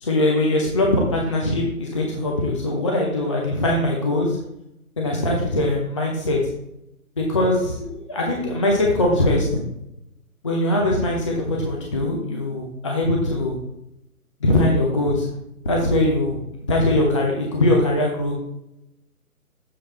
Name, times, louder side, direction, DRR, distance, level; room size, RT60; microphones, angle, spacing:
voice 1, 0.0-4.4 5.0-6.4 7.2-9.5 10.4-13.6 14.4-15.3 15.7-18.3, left 1 dB, 20° left, -1 dB, 0.6 m, -21 dB
7.3 x 4.5 x 4.2 m, 0.84 s
figure-of-eight pair, 145°, 44 cm